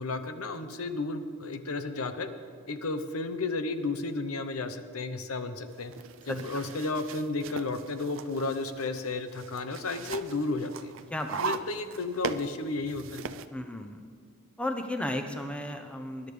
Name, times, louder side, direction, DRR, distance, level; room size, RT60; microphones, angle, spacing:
voice 1, 0.0-2.3 2.7-5.9 6.3-10.9 11.4-13.2, left 3 dB, 85° left, 9 dB, 0.9 m, -33 dB
sound 1, 5.7-13.5, right 6 dB, 60° right, 0.5 m, -39 dB
voice 2, 11.1-11.4 13.5-14.0 14.6-16.3, left 1 dB, 5° left, 5 dB, 0.7 m, -34 dB
20.5 x 11.0 x 3.3 m, 2.2 s
head